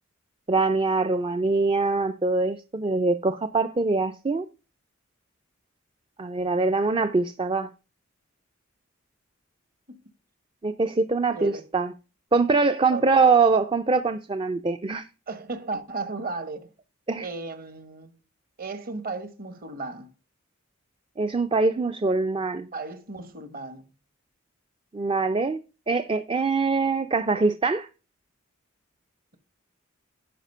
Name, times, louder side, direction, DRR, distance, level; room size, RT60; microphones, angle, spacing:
voice 1, 0.5-4.5 6.2-7.7 10.6-11.9 12.3-15.1 17.1-17.3 21.2-22.7 24.9-25.6 25.9-27.9, right 3 dB, 25° right, 0.4 m, -23 dB
voice 2, 12.9-13.2 15.3-16.7 17.2-18.1 18.6-20.1 22.7-23.8, right 3 dB, 45° right, 1.2 m, -35 dB
10.0 x 5.1 x 5.5 m
head